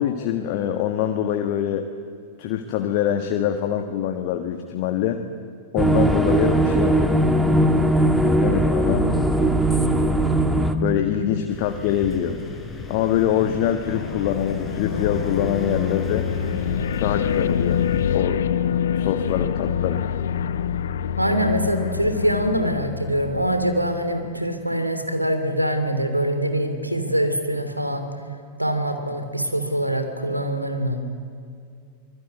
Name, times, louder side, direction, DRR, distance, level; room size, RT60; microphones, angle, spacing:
voice 1, 0.0-1.9 2.4-5.2 5.7-7.2 8.4-9.1 10.8-12.4 12.9-16.3 17.0-17.8 18.1-18.4 18.9-20.0, left 10 dB, 45° left, 6 dB, 1.6 m, -24 dB
sound 1, 5.8-10.8, right 1 dB, 5° right, 1.9 m, -19 dB
sound 2, 11.5-18.2, left 3 dB, 10° left, 6.2 m, -34 dB
sound 3, 13.9-24.1, left 8 dB, 60° left, 0.9 m, -26 dB
voice 2, 21.2-28.1 28.6-31.0, equal, 90° right, 7 dB, 3.0 m, -24 dB
24.5 x 22.0 x 9.6 m, 2.3 s
figure-of-eight pair, 90°, 0 cm